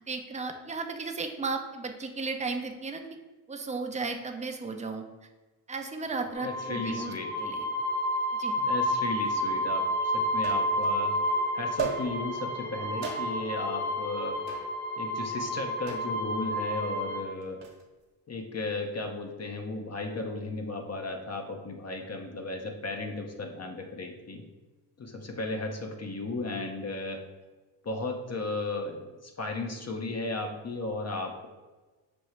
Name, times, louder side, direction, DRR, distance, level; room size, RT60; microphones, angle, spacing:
voice 1, 0.1-3.0 3.5-5.0 5.7-7.1 7.4-7.7 8.4-8.6, right 4 dB, 15° right, 5 dB, 0.5 m, -34 dB
sound 1, 6.3-17.2, equal, 5° left, 0.9 m, -30 dB
voice 2, 6.4-7.3 8.6-11.2 11.5-14.7 15.0-17.6 18.3-24.4 25.0-27.2 27.8-31.5, left 3 dB, 35° left, 3 dB, 0.7 m, -35 dB
sound 2, 9.3-9.4 10.4-11.0 11.8-12.4 13.0-13.6 14.5-14.8 15.9-16.2 17.4-17.8, right 5 dB, 65° right, 1.1 m, -36 dB
6.1 x 2.3 x 3.1 m, 1.2 s
supercardioid pair, 55°, 47 cm